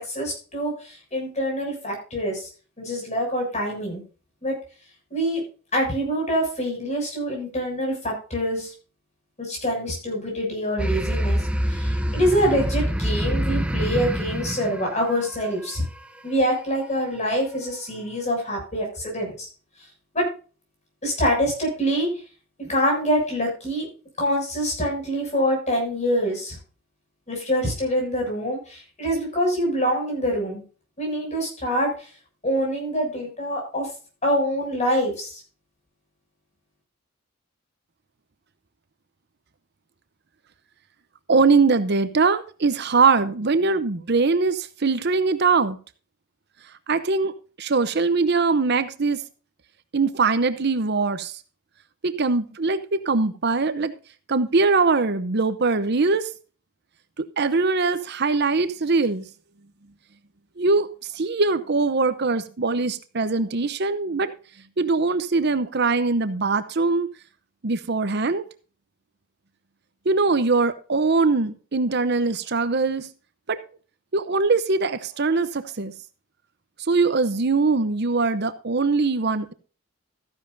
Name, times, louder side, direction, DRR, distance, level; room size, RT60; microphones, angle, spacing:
voice 1, 0.0-2.5 2.8-4.0 4.4-4.6 5.1-5.4 5.7-8.7 9.4-11.4 11.7-15.8 16.2-19.5 20.1-20.2 21.0-22.1 22.6-23.9 24.2-26.6 27.3-30.6 31.0-32.1 32.4-33.9 34.2-35.4, equal, 35° left, 6.9 m, -25 dB
sound 1, 10.8-15.7, equal, 5° right, 0.8 m, -25 dB
voice 2, 41.3-45.8 46.9-47.3 47.6-49.2 49.9-51.4 52.0-53.9 54.3-56.3 57.2-59.3 60.6-60.9 61.1-64.3 64.8-67.1 67.6-68.4 70.1-73.1 73.5-73.6 74.1-75.9 76.9-79.5, right 4 dB, 55° right, 0.8 m, -22 dB
14.0 x 10.5 x 2.7 m
head